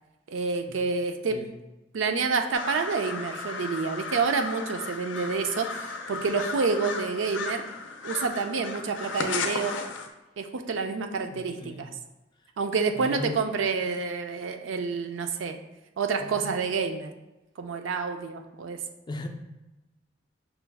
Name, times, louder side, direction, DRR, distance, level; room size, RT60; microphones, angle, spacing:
voice 1, 0.3-1.4 1.9-7.6 8.0-9.8 10.4-11.9 12.6-15.6 16.0-17.1 17.6-18.8, right 4 dB, 85° right, 6 dB, 0.4 m, -28 dB
sound 1, 2.5-10.1, left 4 dB, 80° left, 0.5 m, -35 dB
voice 2, 11.3-11.9 13.0-13.4 16.2-16.6 19.1-19.3, left 2 dB, 25° left, 4 dB, 0.4 m, -38 dB
5.6 x 2.3 x 3.4 m, 1.0 s
head